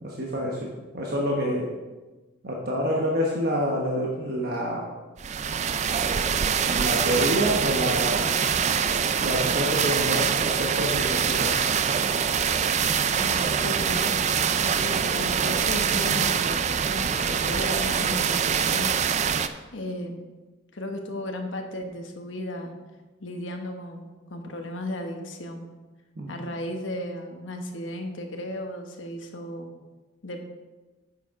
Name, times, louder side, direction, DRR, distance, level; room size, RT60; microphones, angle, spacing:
voice 1, 0.0-1.7 2.4-4.8 6.7-8.4 9.2-11.6 14.8-14.9 26.2-26.3, equal, 50° right, -2 dB, 1.1 m, -27 dB
sound 1, 5.2-19.5, right 7 dB, 35° right, 0.3 m, -24 dB
voice 2, 13.2-14.2 14.6-19.4 19.7-20.2 20.7-22.8 23.2-25.7 26.3-29.7 30.2-30.4, left 1 dB, 75° left, 4 dB, 1.2 m, -35 dB
9.7 x 6.8 x 3.7 m, 1.2 s
head